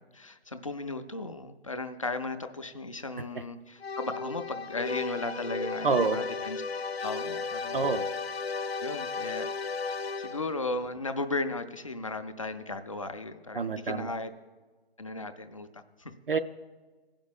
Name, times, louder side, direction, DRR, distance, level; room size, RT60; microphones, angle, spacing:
voice 1, 0.1-6.6 7.0-8.0 8.8-9.5 10.2-14.3 15.0-16.1, left 2 dB, 35° left, 8 dB, 0.5 m, -36 dB
sound 1, 3.8-10.7, left 4 dB, 80° left, 0.6 m, -34 dB
voice 2, 5.8-6.2 7.7-8.1 13.5-14.1 16.3-16.4, right 4 dB, 60° right, 9 dB, 0.5 m, -27 dB
15.5 x 5.2 x 7.2 m, 1.3 s
figure-of-eight pair, 150°, 31 cm